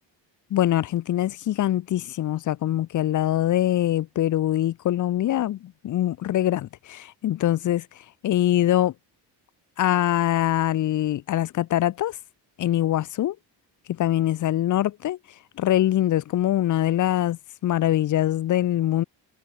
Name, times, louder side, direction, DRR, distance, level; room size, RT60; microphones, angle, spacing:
voice 1, 0.5-7.9 8.2-8.9 9.8-12.2 12.6-13.4 13.9-15.2 15.6-19.0, left 13 dB, 45° left, 0.4 m, -23 dB
cardioid pair, 100°, 45 cm